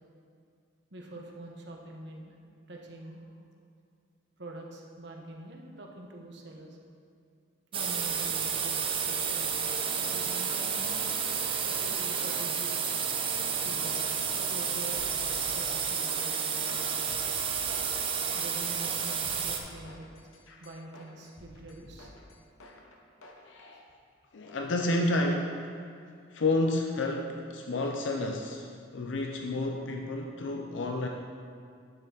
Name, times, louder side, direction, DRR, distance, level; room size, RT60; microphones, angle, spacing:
voice 1, 0.9-2.3 2.7-3.4 4.4-6.8 7.7-9.7 10.0-10.9 11.6-13.0 13.6-14.0 14.3-16.5 18.3-20.1 20.6-22.1 23.2-23.3, right 1 dB, 60° right, 0 dB, 1.1 m, -45 dB
sound 1, 7.7-19.6, right 6 dB, 25° right, 0.6 m, -31 dB
sound 2, 14.9-23.4, left 1 dB, 85° left, 1.0 m, -52 dB
voice 2, 23.4-23.9 24.3-25.7 26.3-31.1, left 2 dB, 65° left, 2 dB, 0.5 m, -30 dB
9.6 x 6.7 x 3.9 m, 2.3 s
head